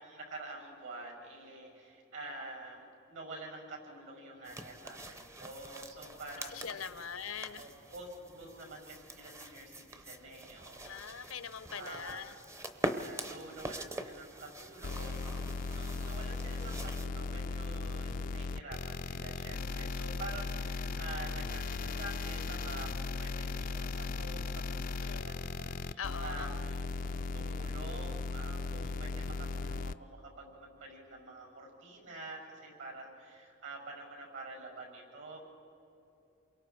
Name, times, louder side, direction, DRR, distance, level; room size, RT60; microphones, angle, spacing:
voice 1, 0.0-6.8 7.6-11.3 11.8-12.2 12.9-35.4, right 2 dB, 65° right, 1 dB, 6.7 m, -47 dB
sound 1, 4.4-17.1, right 1 dB, 15° right, 0.8 m, -44 dB
voice 2, 6.4-7.7 10.8-12.4 25.0-25.4 26.0-26.6, left 7 dB, 85° left, 12 dB, 0.9 m, -42 dB
sound 2, 14.8-29.9, left 4 dB, 40° left, 0.4 m, -37 dB
28.0 x 22.5 x 4.7 m, 2.8 s
head